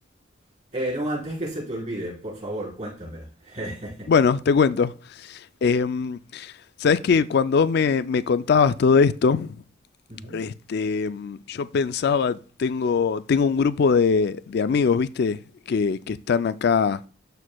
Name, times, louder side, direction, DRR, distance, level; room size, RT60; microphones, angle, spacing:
voice 1, 0.7-4.1 10.1-10.5, right 1 dB, 35° right, 4.1 m, -32 dB
voice 2, 4.1-4.9 5.3-6.5 6.8-9.6 10.3-15.4 15.7-17.0, left 5 dB, 55° left, 0.3 m, -22 dB
13.0 x 4.5 x 2.3 m
head